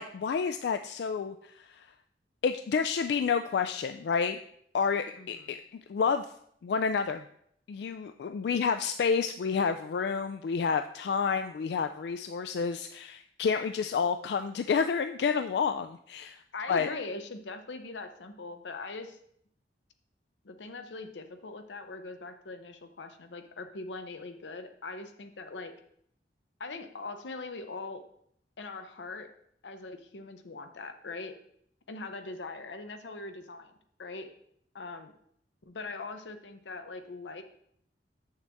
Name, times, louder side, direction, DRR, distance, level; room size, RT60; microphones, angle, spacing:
voice 1, 0.0-1.5 2.4-4.4 4.7-5.6 5.9-6.3 6.6-7.2 7.7-16.4 16.7-16.9, left 6 dB, 65° left, 8 dB, 0.3 m, -29 dB
voice 2, 5.1-5.6 16.5-19.2 20.4-25.7 26.6-28.0 28.6-29.3 29.6-31.4 31.9-33.7 34.0-34.3 34.7-35.1 35.6-37.4, left 3 dB, 90° left, 8 dB, 0.8 m, -41 dB
7.4 x 6.5 x 3.5 m, 0.68 s
head